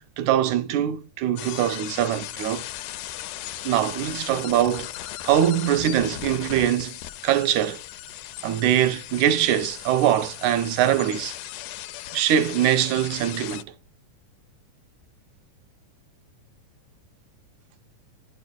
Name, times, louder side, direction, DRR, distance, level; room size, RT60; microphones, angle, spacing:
voice 1, 0.2-2.6 3.6-4.9 5.2-6.9 7.2-7.8 8.4-11.3 12.1-13.7, right 11 dB, 75° right, 2.1 m, -22 dB
sound 1, 1.4-13.6, left 13 dB, 90° left, 2.1 m, -37 dB
11.5 x 6.7 x 2.4 m
omnidirectional pair, 3.6 m